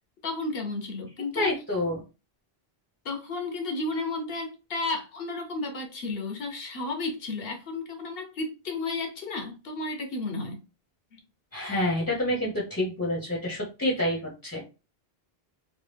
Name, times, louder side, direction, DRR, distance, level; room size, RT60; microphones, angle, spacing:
voice 1, 0.2-1.5 3.0-10.6 11.1-11.2, left 3 dB, 70° left, 0.9 m, -33 dB
voice 2, 1.4-2.0 11.5-14.6, left 1 dB, 15° left, 0.7 m, -28 dB
3.0 x 2.3 x 3.2 m
omnidirectional pair, 1.0 m